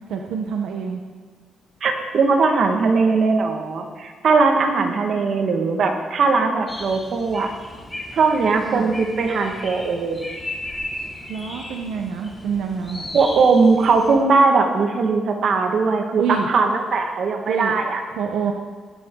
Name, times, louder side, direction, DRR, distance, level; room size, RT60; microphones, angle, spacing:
voice 1, 0.1-1.0 4.6-5.3 8.7-8.9 11.3-13.2 16.2-16.5 17.5-17.7 18.1-18.5, right 6 dB, 85° right, 2 dB, 1.0 m, -27 dB
voice 2, 1.8-7.5 8.1-10.3 13.1-18.0, right 4 dB, 55° right, 3 dB, 1.8 m, -19 dB
sound 1, 6.7-14.1, left 1 dB, 15° left, 2.8 m, -36 dB
19.5 x 10.0 x 3.9 m, 1.5 s
cardioid pair, 125°, 0 cm